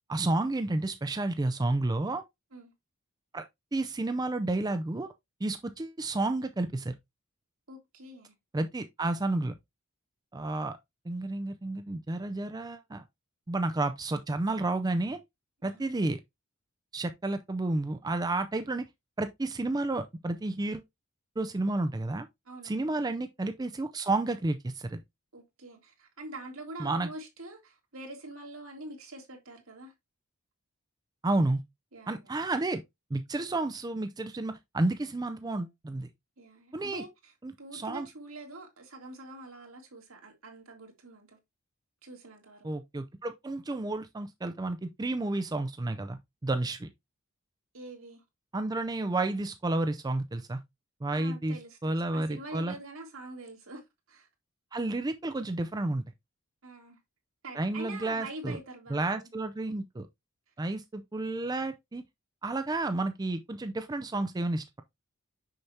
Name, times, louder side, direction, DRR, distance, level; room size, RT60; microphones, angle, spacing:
voice 1, 0.1-2.2 3.3-3.4 3.7-5.1 5.4-6.9 8.5-9.5 10.3-10.8 11.1-13.0 13.5-15.2 15.6-16.2 16.9-18.8 19.2-20.8 21.4-22.3 22.6-25.0 26.8-27.1 31.2-31.6 32.1-32.8 33.1-36.1 36.7-37.0 37.4-38.1 42.6-46.9 48.5-50.6 51.0-51.6 51.8-52.7 54.7-56.0 57.6-58.6 58.9-60.1 60.6-62.0 62.4-64.8, right 2 dB, 20° right, 0.4 m, -31 dB
voice 2, 7.7-8.3 15.6-15.9 22.5-22.7 25.3-29.9 31.9-32.3 36.4-37.3 37.6-41.4 42.0-42.7 47.7-48.2 51.1-54.3 56.6-57.0 57.4-59.3, right 2 dB, 70° right, 2.1 m, -45 dB
6.4 x 5.9 x 2.8 m
head